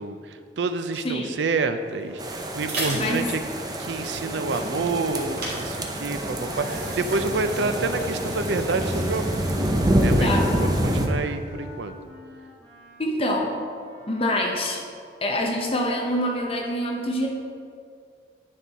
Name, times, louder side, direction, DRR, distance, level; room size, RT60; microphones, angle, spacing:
voice 1, 0.0-3.4 3.8-9.4 10.0-11.9, right 3 dB, 85° right, 9 dB, 0.5 m, -28 dB
voice 2, 1.0-1.4 2.9-3.3 10.2-10.5 13.0-13.6 14.1-14.8 15.2-17.3, left 1 dB, 30° left, 1 dB, 0.7 m, -25 dB
sound 1, 1.9-11.7, right 1 dB, 60° right, 2.2 m, -38 dB
sound 2, 2.2-11.1, right 1 dB, 20° right, 0.6 m, -26 dB
Wind instrument woodwind instrument, 5.4-14.4, equal, 10° left, 1.8 m, -46 dB
9.8 x 5.4 x 4.1 m, 2.3 s
head